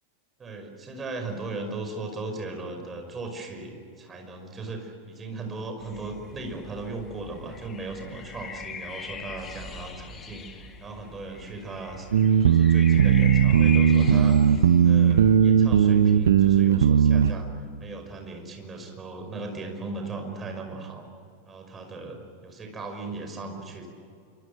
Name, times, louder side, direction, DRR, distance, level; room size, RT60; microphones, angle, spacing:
voice 1, 0.4-10.5 10.8-12.1 12.4-14.4 14.8-17.5 17.8-21.1 21.5-23.9, right 3 dB, 20° right, 4 dB, 5.6 m, -37 dB
sound 1, 5.8-15.4, left 6 dB, 25° left, 2.3 m, -41 dB
sound 2, 12.1-17.3, right 8 dB, 65° right, 1.0 m, -18 dB
27.5 x 25.5 x 6.6 m, 2.4 s
figure-of-eight pair, 90°, 0 cm